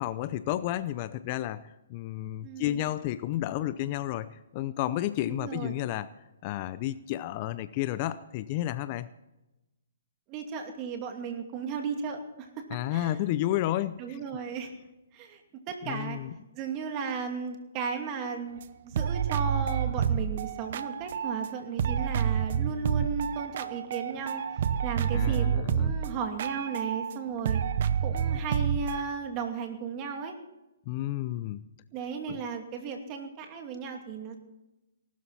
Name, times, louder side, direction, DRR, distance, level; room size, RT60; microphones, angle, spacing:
voice 1, 0.0-6.1 6.4-9.1 12.7-14.2 15.8-16.3 25.1-26.0 30.9-31.6 32.3-32.4, left 14 dB, 35° left, 15 dB, 0.6 m, -31 dB
voice 2, 2.4-2.8 5.3-5.8 10.3-12.6 12.9-13.2 14.0-14.7 15.1-15.4 15.7-16.2 16.5-24.4 24.8-27.6 28.0-30.3 31.9-34.4, right 6 dB, 30° right, 4 dB, 2.6 m, -35 dB
sound 1, 18.6-18.7 18.9-21.5 21.8-27.2 27.5-29.0, right 8 dB, 55° right, 0.8 m, -29 dB
19.5 x 12.5 x 4.2 m, 0.98 s
hypercardioid pair, 140°, 0 cm